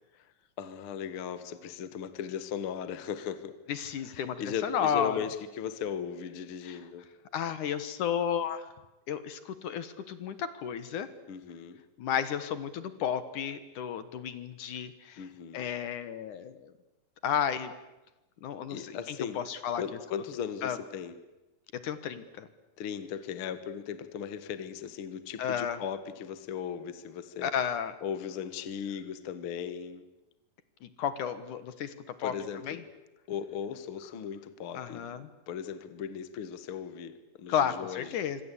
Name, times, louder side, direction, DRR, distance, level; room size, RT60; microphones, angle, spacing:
voice 1, 0.6-3.6 4.0-7.1 11.3-11.8 15.2-15.6 18.7-19.4 19.7-21.2 22.8-27.5 28.0-30.1 32.2-32.8 33.3-35.1 35.5-38.2, left 8 dB, 50° left, 11 dB, 1.9 m, -37 dB
voice 2, 3.7-5.2 6.6-6.8 7.3-8.6 9.1-11.1 12.0-15.2 15.5-16.7 17.2-17.7 18.4-19.8 20.6-20.8 21.7-22.5 25.4-25.8 27.4-28.0 30.8-31.9 32.2-32.3 32.6-32.8 34.7-35.3 37.5-38.4, left 8 dB, 65° left, 12 dB, 2.7 m, -32 dB
26.0 x 25.5 x 8.5 m, 1.0 s
omnidirectional pair, 4.0 m